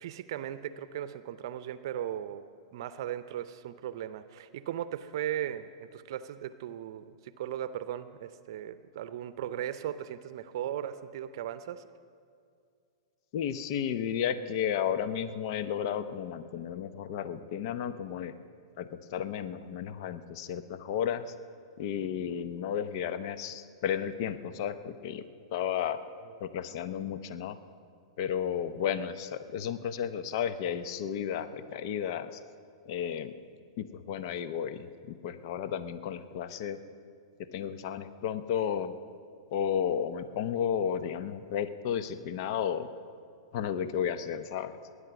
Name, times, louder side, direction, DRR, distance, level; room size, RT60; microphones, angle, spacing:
voice 1, 0.0-2.4 2.7-11.8 26.3-26.4, right 11 dB, 60° right, 13 dB, 0.6 m, -37 dB
voice 2, 13.3-18.3 18.8-21.3 21.8-25.2 25.5-26.1 26.4-27.6 28.2-32.4 32.9-33.3 33.8-36.8 37.5-39.0 39.5-42.9 43.5-44.8, left 8 dB, 55° left, 12 dB, 0.8 m, -33 dB
19.5 x 9.8 x 6.0 m, 2.3 s
hypercardioid pair, 115°, 3 cm